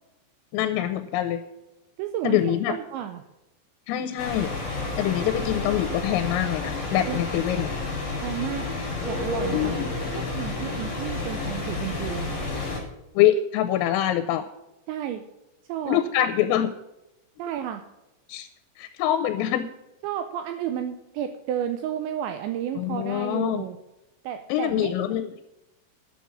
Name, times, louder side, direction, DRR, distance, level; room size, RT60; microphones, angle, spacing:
voice 1, 0.5-1.4 2.2-2.7 3.9-4.5 5.0-7.7 9.5-9.9 13.1-14.5 15.9-16.7 18.3-18.5 18.8-19.7 22.8-23.6 24.5-25.3, left 11 dB, 85° left, 9 dB, 3.3 m, -24 dB
voice 2, 2.0-3.2 7.1-7.2 8.2-8.7 9.1-9.8 10.1-12.4 14.9-15.2 15.7-16.0 17.4-17.9 20.0-23.8 24.2-24.9, right 10 dB, 85° right, 7 dB, 2.6 m, -32 dB
sound 1, 4.2-12.8, left 3 dB, 25° left, 3.6 m, -30 dB
9.9 x 7.3 x 8.5 m, 0.95 s
omnidirectional pair, 6.0 m